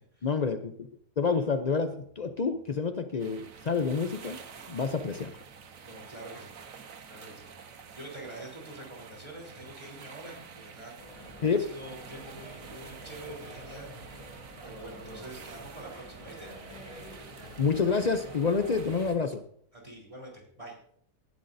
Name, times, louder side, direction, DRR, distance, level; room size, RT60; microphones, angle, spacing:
voice 1, 0.2-0.9 1.2-4.4 4.7-5.4 11.4-11.6 17.6-19.4, left 5 dB, 90° left, 8 dB, 0.3 m, -28 dB
sound 1, 3.2-19.1, right 6 dB, 60° right, 1.4 m, -49 dB
voice 2, 5.8-6.5 7.1-10.9 11.5-14.4 14.6-16.5 19.7-20.8, right 1 dB, 20° right, -2 dB, 3.9 m, -46 dB
sound 2, 11.0-19.2, equal, 20° left, 3.0 m, -47 dB
18.0 x 12.0 x 2.7 m, 0.63 s
omnidirectional pair, 1.7 m